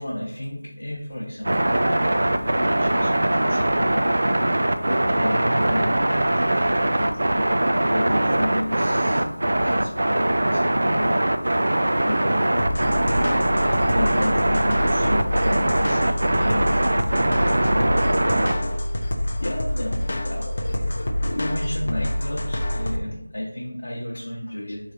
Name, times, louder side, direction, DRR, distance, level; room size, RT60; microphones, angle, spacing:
voice 1, 0.0-4.3 5.1-6.6 7.4-11.4 12.0-24.8, left 1 dB, 70° left, -4 dB, 0.9 m, -33 dB
sound 1, 1.4-18.5, right 1 dB, 60° right, 0.4 m, -21 dB
sound 2, 12.6-23.0, left 1 dB, 40° left, 0.4 m, -26 dB
3.8 x 3.2 x 2.5 m, 0.86 s
figure-of-eight pair, 175°, 0 cm